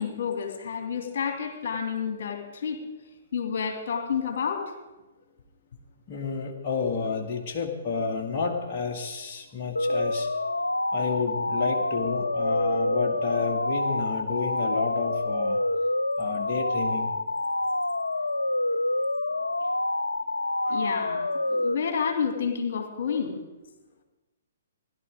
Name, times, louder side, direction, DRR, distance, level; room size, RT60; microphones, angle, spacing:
voice 1, 0.0-2.8 3.3-4.7 20.7-23.4, left 6 dB, 50° left, 4 dB, 2.9 m, -30 dB
voice 2, 6.1-10.3 10.9-15.6 16.2-17.1, left 4 dB, 35° left, 0 dB, 1.9 m, -30 dB
sound 1, 9.7-21.7, left 2 dB, 80° left, 0.6 m, -27 dB
16.0 x 11.5 x 5.1 m, 1.1 s
figure-of-eight pair, 120°, 0 cm